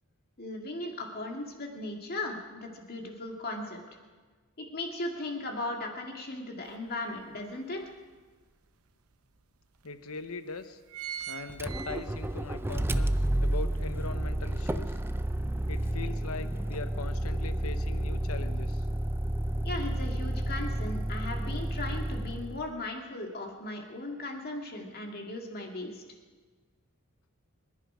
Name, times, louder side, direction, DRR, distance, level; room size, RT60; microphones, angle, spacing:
voice 1, 0.4-3.8 4.6-7.8 19.6-26.0, left 2 dB, 45° left, 2 dB, 2.2 m, -37 dB
sound 1, 6.7-6.8 7.2-8.4 9.1-9.2 9.4-9.5 10.2-10.4 10.6-12.5 12.9-13.0, right 9 dB, 80° right, 0.9 m, -41 dB
voice 2, 9.8-10.8 11.3-13.1 13.4-15.0 15.7-18.9, left 4 dB, 80° left, 10 dB, 0.9 m, -40 dB
Motor vehicle (road), 11.5-22.7, right 1 dB, 10° right, 0.4 m, -31 dB
25.0 x 11.0 x 5.0 m, 1.4 s
head